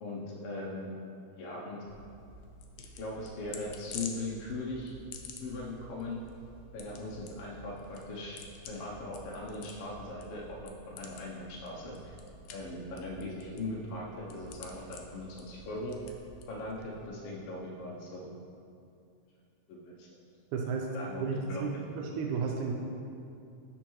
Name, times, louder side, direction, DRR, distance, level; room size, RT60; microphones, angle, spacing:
voice 1, 0.0-0.9 1.4-1.8 2.8-4.9 5.4-6.2 6.7-8.4 8.7-12.0 12.5-16.0 16.5-18.3 19.7-20.1 20.9-21.6, left 2 dB, 70° left, -4 dB, 1.5 m, -39 dB
sound 1, 1.9-17.1, left 3 dB, 85° left, 2.0 m, -49 dB
voice 2, 20.5-20.9 21.2-21.7 22.0-22.7, right 5 dB, 85° right, 1 dB, 2.0 m, -32 dB
11.5 x 4.5 x 3.0 m, 2.5 s
omnidirectional pair, 3.4 m